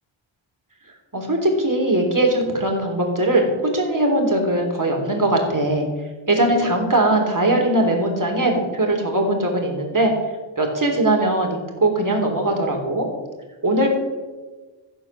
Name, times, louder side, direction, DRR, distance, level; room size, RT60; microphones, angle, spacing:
voice 1, 1.1-5.8 6.3-10.1 10.6-13.1 13.6-13.9, right 1 dB, 40° right, 1 dB, 3.5 m, -20 dB
14.5 x 7.5 x 7.3 m, 1.3 s
wide cardioid pair, 70°, 48 cm